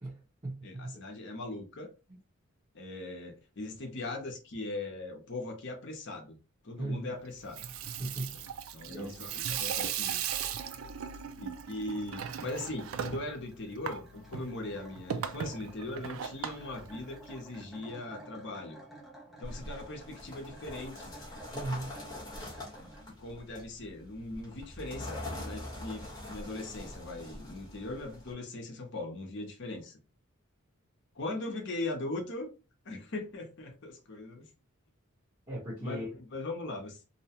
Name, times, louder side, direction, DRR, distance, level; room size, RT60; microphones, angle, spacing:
voice 1, 0.0-1.0 6.8-7.1 8.0-8.3 8.8-9.2 21.5-22.0 35.5-36.1, right 1 dB, 25° right, 1.1 m, -37 dB
voice 2, 0.6-1.9 2.7-6.4 6.6-7.7 8.3-8.4 8.7-10.2 11.4-18.8 19.4-21.1 22.8-30.0 31.1-32.5 32.8-34.5 35.8-37.0, left 2 dB, 55° left, 0.7 m, -40 dB
Water tap faucet / Sink (filling or washing), 7.4-17.6, right 8 dB, 70° right, 0.3 m, -38 dB
sound 1, 12.8-23.0, right 1 dB, ahead, 0.6 m, -53 dB
sound 2, 19.4-28.3, left 1 dB, 20° left, 1.0 m, -44 dB
2.7 x 2.2 x 2.8 m
head